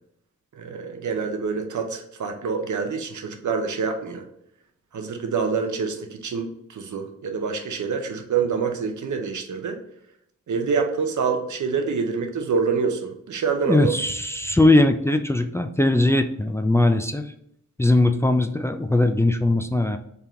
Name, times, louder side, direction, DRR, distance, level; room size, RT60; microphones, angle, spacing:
voice 1, 0.5-4.2 4.9-9.8 10.5-13.9, right 5 dB, 75° right, 5 dB, 0.7 m, -26 dB
voice 2, 13.7-17.3 17.8-20.0, left 2 dB, 10° left, 7 dB, 0.3 m, -20 dB
3.5 x 2.8 x 3.4 m, 0.73 s
cardioid pair, 55°, 30 cm